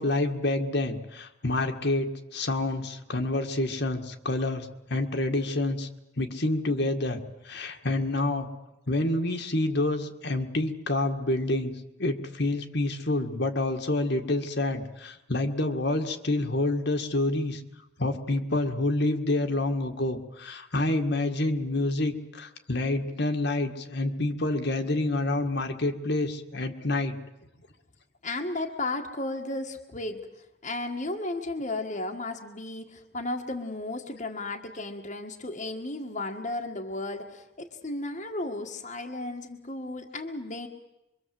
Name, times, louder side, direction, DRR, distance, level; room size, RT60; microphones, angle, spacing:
voice 1, 0.0-5.9 6.2-7.2 7.4-8.5 8.9-11.7 12.0-17.6 18.0-27.2, left 2 dB, 55° left, 5 dB, 1.9 m, -28 dB
voice 2, 28.2-30.3 30.6-40.7, left 2 dB, 35° left, 3 dB, 1.8 m, -34 dB
25.0 x 24.5 x 7.8 m, 0.93 s
head